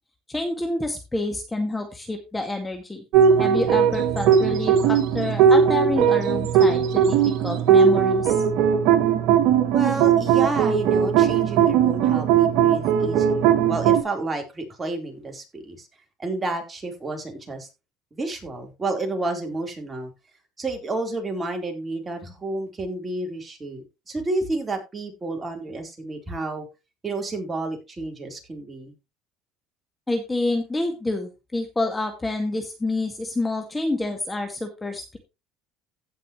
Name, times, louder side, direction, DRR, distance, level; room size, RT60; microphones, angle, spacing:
voice 1, 0.3-3.0 3.4-7.2 7.4-8.4 30.1-35.2, left 2 dB, 15° left, 4 dB, 2.1 m, -28 dB
sound 1, 3.1-14.0, right 8 dB, 70° right, 1.6 m, -19 dB
voice 2, 9.7-15.9 16.2-17.7 18.1-20.1 20.6-26.7 27.0-28.9, right 2 dB, 20° right, 2 dB, 4.0 m, -30 dB
16.0 x 5.7 x 3.1 m, 0.27 s
supercardioid pair, 95°, 0 cm